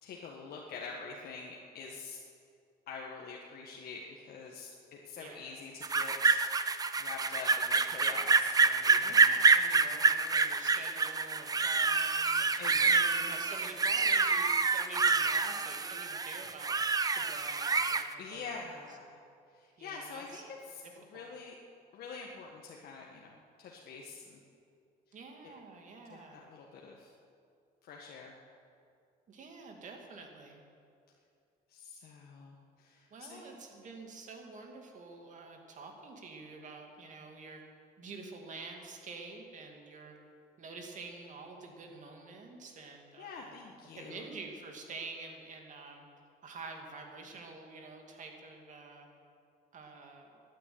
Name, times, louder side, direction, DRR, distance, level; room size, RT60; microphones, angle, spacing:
voice 1, 0.0-2.2 2.9-6.4 7.0-9.4 12.6-13.0 18.2-19.2 19.5-20.8 21.1-21.5 21.9-24.4 25.4-25.5 26.1-27.1 27.8-28.3 31.7-33.6 43.2-44.2, left 4 dB, 65° left, -1 dB, 1.6 m, -46 dB
voice 2, 5.2-5.7 9.0-18.8 19.1-19.2 19.8-20.4 21.1-21.3 25.1-26.5 29.3-30.6 33.1-37.6 38.0-40.2 40.6-43.6 43.9-46.0 46.4-49.1 49.7-50.4, right 3 dB, 45° right, 2 dB, 2.5 m, -48 dB
sound 1, 5.8-18.1, right 4 dB, 20° right, 0.7 m, -27 dB
12.5 x 9.6 x 9.4 m, 2.4 s
cardioid pair, 110°, 17 cm